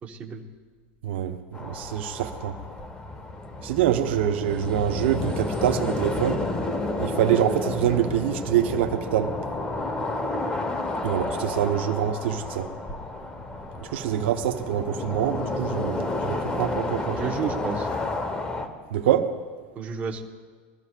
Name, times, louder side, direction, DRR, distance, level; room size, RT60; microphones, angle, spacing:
voice 1, 0.0-0.4 17.2-17.9 19.7-20.2, right 6 dB, 25° right, 1.2 m, -31 dB
voice 2, 1.0-2.6 3.6-6.4 7.0-9.4 11.0-12.7 13.8-17.4 18.9-19.3, right 10 dB, 75° right, 0.9 m, -25 dB
sound 1, 1.5-18.7, left 2 dB, 15° left, 1.1 m, -31 dB
22.5 x 14.0 x 2.5 m
supercardioid pair, 145°, 6 cm